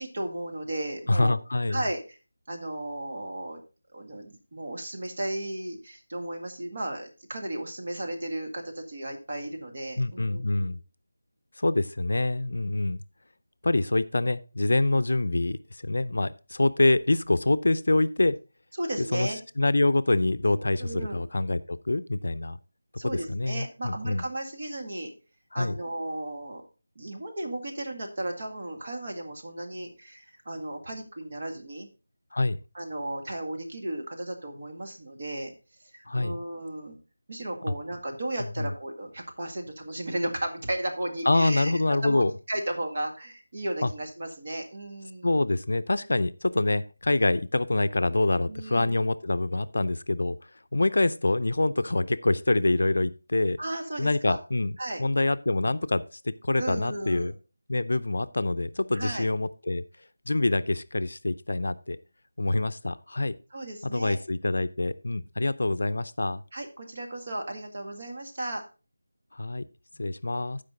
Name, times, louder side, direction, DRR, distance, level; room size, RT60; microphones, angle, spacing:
voice 1, 0.0-1.4 1.7-2.2 2.5-3.6 3.9-10.7 18.8-19.4 20.8-21.2 23.0-25.1 25.5-26.6 27.0-31.9 32.7-35.5 35.9-37.0 37.3-45.3 48.5-48.9 53.6-54.4 54.8-55.0 56.6-57.3 58.9-59.3 63.5-64.2 66.5-68.6, right 1 dB, 45° right, 2 dB, 2.0 m, -35 dB
voice 2, 1.1-1.8 10.0-10.8 11.6-13.0 13.6-15.6 15.8-18.4 19.1-19.3 19.6-22.6 23.0-24.2 25.5-25.7 32.3-32.6 36.1-36.4 38.6-38.7 41.3-42.3 43.8-43.9 45.2-50.4 50.7-53.6 54.0-57.3 57.7-59.8 60.3-62.0 62.4-63.3 63.8-66.4 69.3-69.6 70.0-70.6, left 2 dB, 60° left, 12 dB, 0.5 m, -25 dB
14.0 x 5.1 x 3.8 m, 0.32 s
figure-of-eight pair, 165°, 0 cm